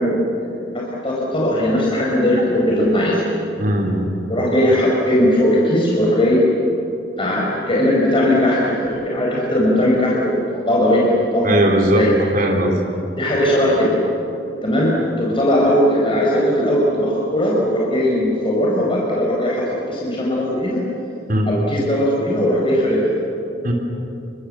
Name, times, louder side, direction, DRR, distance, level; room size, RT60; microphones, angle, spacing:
voice 1, 0.0-3.2 4.2-6.5 7.2-11.5 11.9-12.1 13.2-13.9 14.6-20.8 21.5-23.2, equal, 30° left, -4 dB, 4.7 m, -18 dB
voice 2, 3.6-4.1 11.4-12.1 12.3-12.8 21.3-21.5 23.6-23.7, right 1 dB, 50° right, 1 dB, 3.5 m, -18 dB
28.0 x 25.0 x 7.6 m, 2.8 s
head